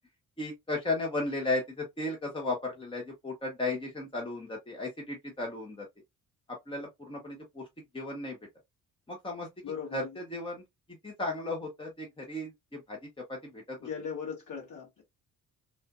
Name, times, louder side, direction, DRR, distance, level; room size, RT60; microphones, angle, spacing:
voice 1, 0.4-5.8 6.7-7.6 7.9-8.4 9.1-9.5 9.9-10.6 11.0-13.0 13.3-13.8, left 2 dB, 10° left, 1.2 m, -35 dB
voice 2, 9.6-10.2 13.8-15.0, left 6 dB, 40° left, 2.2 m, -38 dB
3.6 x 2.5 x 2.5 m
figure-of-eight pair, 40°, 44 cm